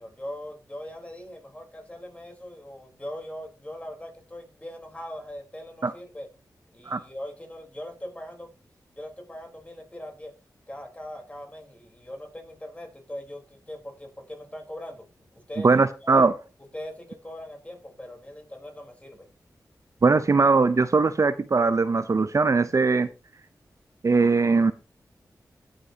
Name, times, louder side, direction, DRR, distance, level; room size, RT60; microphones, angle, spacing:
voice 1, 0.0-6.3 6.7-8.5 9.0-10.3 10.7-15.7 16.0-16.3 16.7-19.3, left 1 dB, 20° left, 3 dB, 3.8 m, -40 dB
voice 2, 15.6-16.3 20.0-23.1 24.0-24.7, right 4 dB, 45° right, 13 dB, 0.6 m, -20 dB
16.5 x 8.2 x 2.8 m, 0.34 s
cardioid pair, 60°, 7 cm